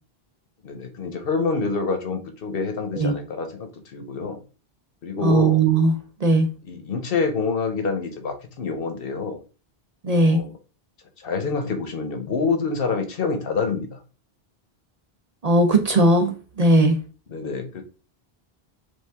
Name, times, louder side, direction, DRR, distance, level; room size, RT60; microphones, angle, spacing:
voice 1, 0.6-4.4 5.0-5.6 6.6-9.4 10.1-10.6 11.2-14.0 17.3-17.8, left 4 dB, 65° left, 1.0 m, -27 dB
voice 2, 5.2-6.5 10.0-10.4 15.4-17.0, right 2 dB, 45° right, 0.6 m, -18 dB
4.7 x 2.5 x 3.4 m
omnidirectional pair, 1.0 m